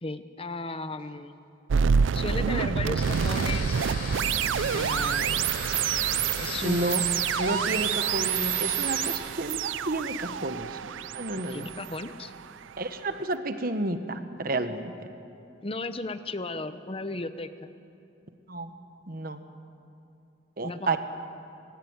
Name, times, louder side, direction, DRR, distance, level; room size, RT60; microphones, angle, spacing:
voice 1, 0.0-1.3 2.1-3.9 4.7-5.5 6.4-6.9 11.5-12.3 15.6-17.7 20.6-21.0, left 2 dB, 30° left, 11 dB, 0.9 m, -35 dB
sound 1, 1.7-12.7, right 7 dB, 85° right, 0.4 m, -27 dB
sound 2, 3.0-9.1, left 3 dB, 50° left, 4.0 m, -38 dB
voice 2, 6.6-7.0 7.4-10.8 11.1-11.7 12.8-14.9 18.5-18.7 19.1-19.4 20.6-21.0, right 2 dB, 50° right, 9 dB, 1.2 m, -30 dB
19.5 x 17.5 x 9.6 m, 2.8 s
head